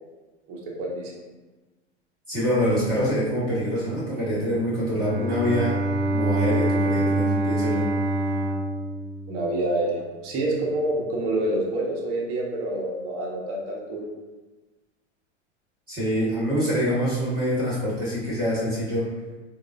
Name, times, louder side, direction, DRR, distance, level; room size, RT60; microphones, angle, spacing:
voice 1, 0.5-1.2 9.3-14.0, right 1 dB, 40° right, -2 dB, 0.9 m, -27 dB
voice 2, 2.3-5.8 6.1-7.8 15.9-19.1, equal, 25° right, -8 dB, 1.1 m, -25 dB
Bowed string instrument, 4.9-9.9, right 1 dB, 80° right, 0.7 m, -25 dB
3.7 x 2.0 x 2.4 m, 1.2 s
hypercardioid pair, 95°, 35 cm